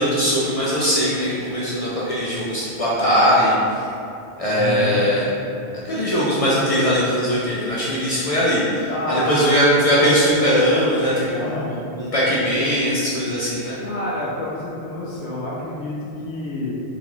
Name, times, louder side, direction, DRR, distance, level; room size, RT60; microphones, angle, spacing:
voice 1, 0.0-3.9 4.4-5.3 5.7-11.4 11.7-13.8, equal, 50° left, -7 dB, 0.4 m, -20 dB
voice 2, 4.4-5.0 8.9-9.5 11.4-11.7 13.8-16.8, left 1 dB, 75° left, -5 dB, 0.9 m, -28 dB
4.0 x 2.4 x 3.0 m, 2.6 s
omnidirectional pair, 1.1 m